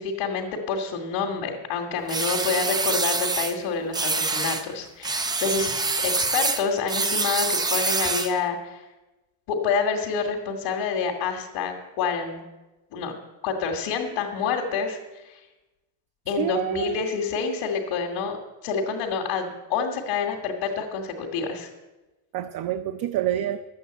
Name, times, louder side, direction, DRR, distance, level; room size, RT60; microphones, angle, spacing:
voice 1, 0.0-5.7 6.0-8.8 9.5-12.4 12.9-13.1 13.4-15.0 15.2-15.4 16.3-18.4 18.6-21.7, left 5 dB, 70° left, -1 dB, 2.0 m, -27 dB
sound 1, 2.1-3.5 3.9-4.6 5.0-8.4, right 3 dB, 10° right, 0.3 m, -25 dB
voice 2, 16.4-17.1 22.3-23.6, right 11 dB, 50° right, 8 dB, 0.6 m, -27 dB
12.0 x 8.5 x 8.0 m, 1.1 s
cardioid pair, 150°, 47 cm